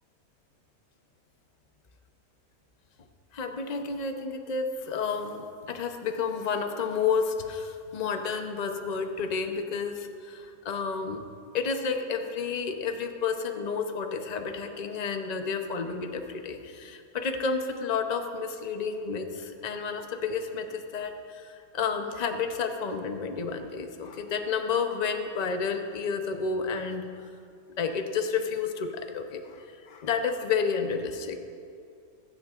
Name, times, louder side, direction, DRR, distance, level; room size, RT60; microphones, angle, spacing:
voice 1, 3.3-11.3 11.5-27.3 27.8-31.4, left 5 dB, 50° left, 6 dB, 0.5 m, -31 dB
21.5 x 10.0 x 2.5 m, 2.5 s
omnidirectional pair, 1.7 m